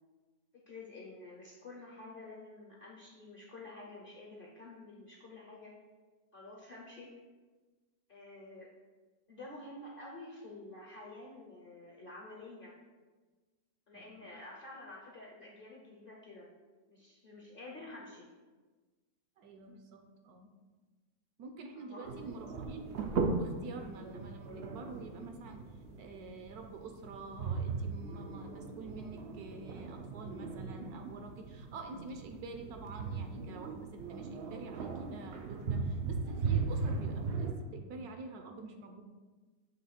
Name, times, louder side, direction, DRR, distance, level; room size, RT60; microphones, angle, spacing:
voice 1, 0.5-5.7 6.3-7.1 8.1-8.7 9.3-12.7 13.9-16.5 16.9-18.3 21.7-22.3, left 2 dB, 50° left, -3 dB, 0.6 m, -49 dB
voice 2, 13.9-14.3 17.8-17.9 19.4-20.5 21.4-22.9 23.3-25.7 25.9-39.0, right 3 dB, 75° right, 4 dB, 1.0 m, -47 dB
sound 1, 22.0-37.5, right 4 dB, 90° right, 0.5 m, -38 dB
7.2 x 3.1 x 4.3 m, 1.3 s
omnidirectional pair, 1.8 m